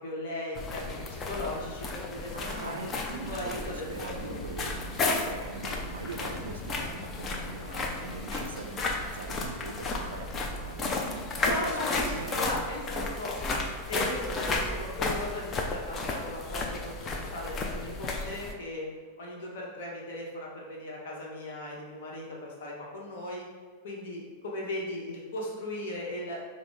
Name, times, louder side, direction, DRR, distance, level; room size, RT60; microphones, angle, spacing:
voice 1, 0.0-2.9 3.3-4.4 11.4-13.4 13.9-18.9 19.2-23.5 23.8-26.4, left 1 dB, 55° left, -3 dB, 0.9 m, -37 dB
sound 1, 0.5-18.5, left 3 dB, 25° left, 0.5 m, -33 dB
voice 2, 2.3-12.7, right 4 dB, 70° right, 4 dB, 0.4 m, -42 dB
4.9 x 2.0 x 3.6 m, 1.5 s
figure-of-eight pair, 90°, 0 cm